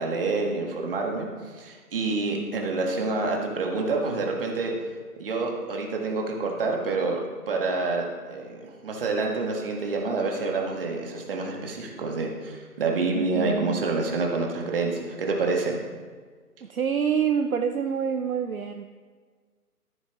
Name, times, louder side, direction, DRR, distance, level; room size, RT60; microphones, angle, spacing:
voice 1, 0.0-4.7 5.2-7.2 7.5-15.8, right 3 dB, 35° right, 0 dB, 1.6 m, -27 dB
voice 2, 13.1-13.9 16.6-18.8, right 7 dB, 65° right, 7 dB, 0.6 m, -27 dB
14.0 x 7.0 x 3.0 m, 1.5 s
figure-of-eight pair, 145°, 46 cm